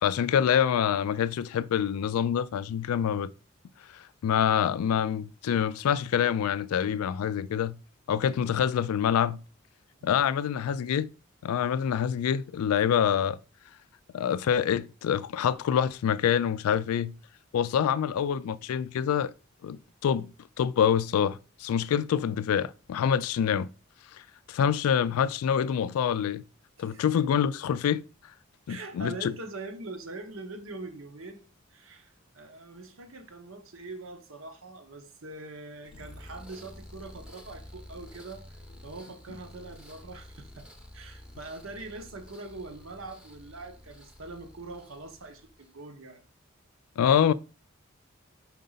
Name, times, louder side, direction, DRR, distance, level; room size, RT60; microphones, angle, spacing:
voice 1, 0.0-3.3 3.9-7.8 8.1-9.4 10.0-11.1 11.4-13.4 14.1-17.1 17.5-19.3 19.6-20.3 20.6-23.7 24.5-26.4 26.8-28.0 28.7-29.3 47.0-47.3, left 8 dB, 85° left, 0.3 m, -26 dB
voice 2, 28.7-46.2, right 2 dB, 70° right, 1.0 m, -43 dB
sound 1, 35.8-45.8, left 1 dB, 5° right, 0.8 m, -50 dB
5.2 x 4.6 x 3.9 m
head